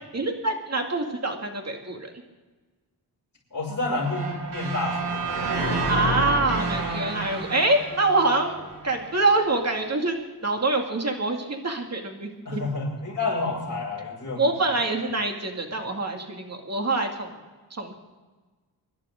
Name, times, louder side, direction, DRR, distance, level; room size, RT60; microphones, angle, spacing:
voice 1, 0.1-2.1 5.9-8.6 8.8-12.6 14.4-17.3 17.7-17.9, right 2 dB, 40° right, 3 dB, 2.4 m, -25 dB
voice 2, 3.5-5.6 12.4-14.4, left 2 dB, 40° left, -9 dB, 6.6 m, -29 dB
sound 1, 4.0-9.1, right 2 dB, 70° right, 3.6 m, -29 dB
25.5 x 11.5 x 3.8 m, 1.3 s
wide cardioid pair, 95°, 42 cm